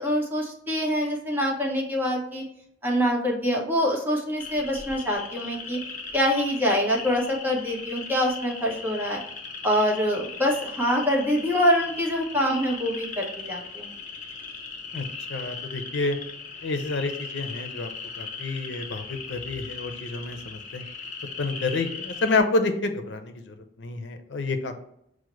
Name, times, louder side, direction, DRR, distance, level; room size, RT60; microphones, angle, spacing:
voice 1, 0.0-2.4 2.8-5.8 6.1-9.2 9.6-13.9, equal, 10° right, -2 dB, 0.9 m, -25 dB
sound 1, 4.4-22.4, left 4 dB, 45° left, 0.8 m, -38 dB
voice 2, 15.3-16.2 16.6-17.9 18.2-20.8 21.4-24.8, left 3 dB, 85° left, 8 dB, 0.5 m, -29 dB
6.1 x 2.1 x 3.0 m, 0.74 s
head